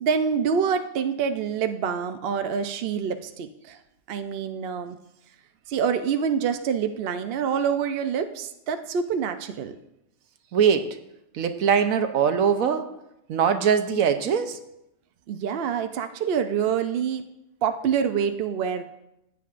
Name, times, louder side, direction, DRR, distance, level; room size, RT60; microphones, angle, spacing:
voice 1, 0.0-3.8 4.1-5.0 5.7-9.8 15.3-17.2 17.6-18.8, right 7 dB, 60° right, 8 dB, 0.7 m, -26 dB
voice 2, 10.5-11.0 11.3-12.9 13.3-14.6, right 7 dB, 85° right, 8 dB, 1.2 m, -22 dB
15.0 x 8.4 x 2.5 m, 0.85 s
omnidirectional pair, 1.4 m